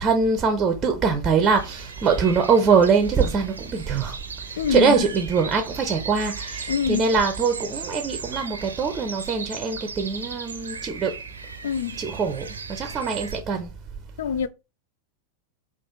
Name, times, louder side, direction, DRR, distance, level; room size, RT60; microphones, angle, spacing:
voice 1, 0.0-4.2 4.7-11.2 12.0-13.7, right 5 dB, 25° right, 0.6 m, -23 dB
sound 1, 1.4-13.4, right 5 dB, 75° right, 0.6 m, -37 dB
voice 2, 4.6-5.1 6.7-7.0 11.6-12.0 14.2-14.5, left 9 dB, 60° left, 0.4 m, -25 dB
4.2 x 2.5 x 3.7 m
figure-of-eight pair, 90°, 0 cm